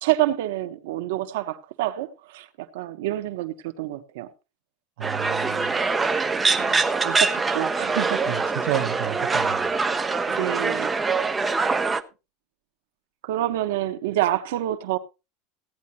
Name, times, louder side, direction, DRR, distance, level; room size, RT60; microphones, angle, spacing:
voice 1, 0.0-4.3 6.6-8.2 10.3-10.9 13.2-15.0, right 14 dB, 80° right, 1.1 m, -27 dB
sound 1, 5.0-12.0, right 4 dB, 10° right, 0.7 m, -24 dB
voice 2, 5.0-5.7 8.3-9.7, right 13 dB, 65° right, 1.1 m, -31 dB
16.5 x 9.7 x 2.9 m
supercardioid pair, 170°, 0 cm